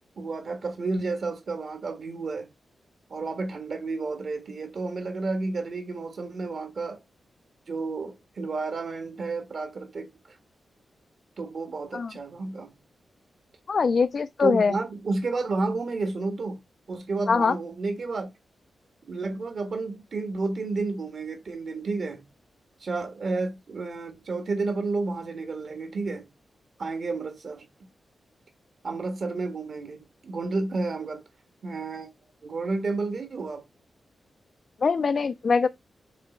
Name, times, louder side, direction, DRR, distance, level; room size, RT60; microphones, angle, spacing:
voice 1, 0.2-2.5 3.1-7.0 7.7-10.1 11.4-12.7 14.4-16.6 16.9-18.3 19.1-22.2 22.8-26.3 26.8-27.6 28.8-31.2 31.6-32.1 32.4-33.6, right 3 dB, 50° right, 1.5 m, -31 dB
voice 2, 13.7-14.7 17.3-17.6 34.8-35.7, left 5 dB, 45° left, 0.3 m, -22 dB
6.6 x 3.9 x 4.4 m
wide cardioid pair, 180°, 0 cm